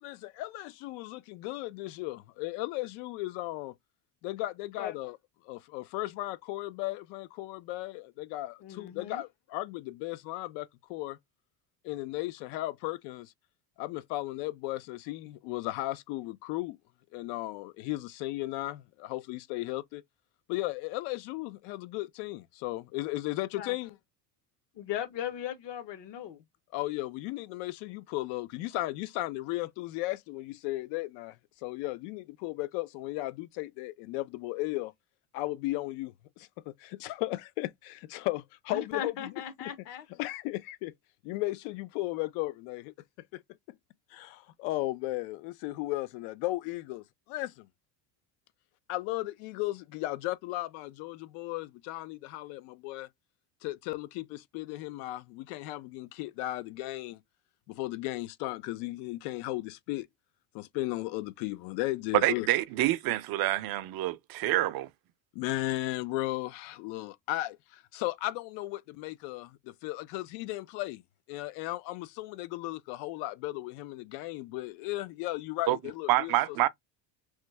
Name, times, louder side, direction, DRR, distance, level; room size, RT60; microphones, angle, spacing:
voice 1, 0.0-3.8 4.2-5.2 5.4-11.2 11.8-13.3 13.8-16.8 17.1-20.0 20.5-24.0 26.7-31.4 31.6-34.9 35.3-39.3 39.6-39.7 40.2-40.9 41.2-42.9 43.3-43.4 43.7-43.8 44.1-47.7 48.9-53.1 53.6-57.2 57.7-60.1 60.5-62.5 65.3-71.0 71.3-76.4, left 18 dB, 75° left, 0.6 m, -35 dB
voice 2, 8.6-9.2 23.6-23.8 24.7-26.4 38.7-40.1, left 10 dB, 60° left, 1.0 m, -37 dB
voice 3, 62.2-64.9 75.7-75.8 76.1-76.7, right 15 dB, 50° right, 0.5 m, -27 dB
3.1 x 2.2 x 3.2 m
supercardioid pair, 110°, 48 cm